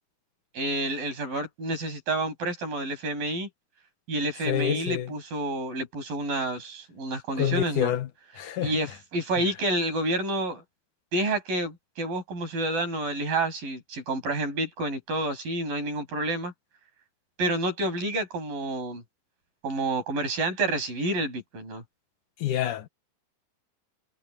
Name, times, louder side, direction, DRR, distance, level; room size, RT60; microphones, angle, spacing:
voice 1, 0.5-3.5 4.1-7.9 8.6-10.6 11.1-16.5 17.4-19.0 19.6-21.8, right 2 dB, 75° right, 8.4 m, -29 dB
voice 2, 4.5-5.1 7.4-8.1 8.4-8.7 22.4-22.9, left 10 dB, 70° left, 2.6 m, -27 dB
omnidirectional pair, 4.0 m